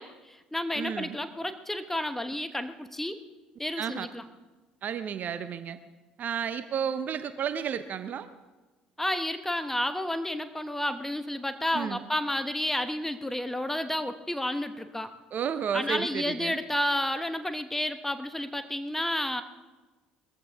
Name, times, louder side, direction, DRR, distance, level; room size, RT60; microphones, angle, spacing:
voice 1, 0.0-3.2 3.6-4.2 9.0-15.1 15.7-19.4, left 1 dB, 5° left, 9 dB, 1.2 m, -31 dB
voice 2, 0.8-1.2 3.8-4.1 4.8-5.8 6.2-8.3 11.7-12.0 15.3-16.6, right 8 dB, 45° right, 12 dB, 0.9 m, -32 dB
20.5 x 14.5 x 3.6 m, 1.2 s
hypercardioid pair, 55°, 4 cm